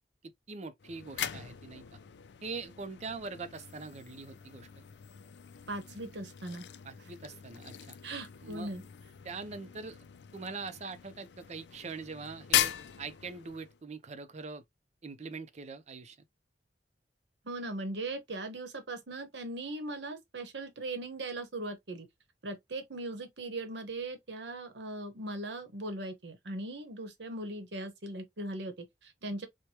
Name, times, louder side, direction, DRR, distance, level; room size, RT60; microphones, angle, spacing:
voice 1, 0.2-1.9 2.4-4.8 6.8-8.0 8.4-8.7 9.2-10.1 10.3-12.7 13.0-14.6 15.0-16.2, right 4 dB, 40° right, 0.5 m, -43 dB
sound 1, 0.8-13.8, left 11 dB, 75° left, 0.4 m, -39 dB
voice 2, 5.7-6.6 8.0-8.8 17.4-22.1 22.4-29.5, right 2 dB, 85° right, 1.0 m, -39 dB
4.5 x 2.2 x 2.8 m
head